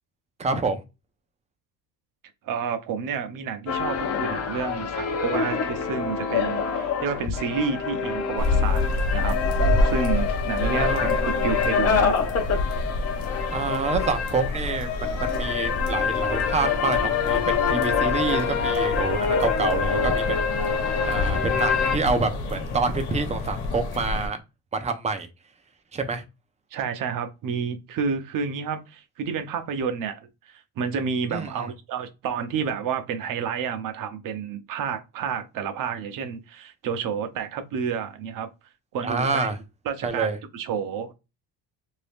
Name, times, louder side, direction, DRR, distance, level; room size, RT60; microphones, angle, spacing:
voice 1, 0.4-0.8 10.6-11.1 13.5-20.4 21.0-24.4 24.7-25.3 25.9-26.2 31.3-31.7 39.0-39.6 40.0-40.4, right 4 dB, 15° right, 0.5 m, -27 dB
voice 2, 2.4-8.8 9.1-12.2 26.7-30.2 30.5-38.5 38.9-39.5 39.9-41.1, right 6 dB, 50° right, 0.7 m, -30 dB
sound 1, 3.7-22.0, left 6 dB, 35° left, 0.6 m, -26 dB
sound 2, 8.4-24.3, left 2 dB, 70° left, 1.2 m, -28 dB
2.7 x 2.6 x 3.5 m
cardioid pair, 145°, 41 cm